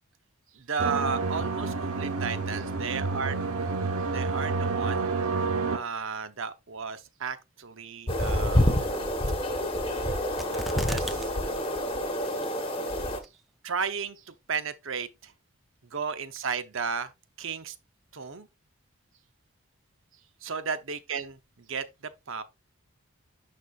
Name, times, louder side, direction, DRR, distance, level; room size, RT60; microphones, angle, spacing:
voice 1, 0.5-3.4 4.1-5.1 5.7-9.1 10.4-11.3 13.6-15.3 15.9-17.1 17.4-17.8 18.1-18.5 20.4-22.4, right 5 dB, 60° right, 0.7 m, -34 dB
sound 1, 0.8-5.8, right 4 dB, 80° right, 1.0 m, -29 dB
sound 2, 8.1-13.2, left 1 dB, 25° left, 1.2 m, -27 dB
sound 3, 10.4-11.3 11.6-11.7 12.2-12.7 13.2-13.3, equal, ahead, 0.4 m, -35 dB
11.0 x 4.2 x 2.4 m
head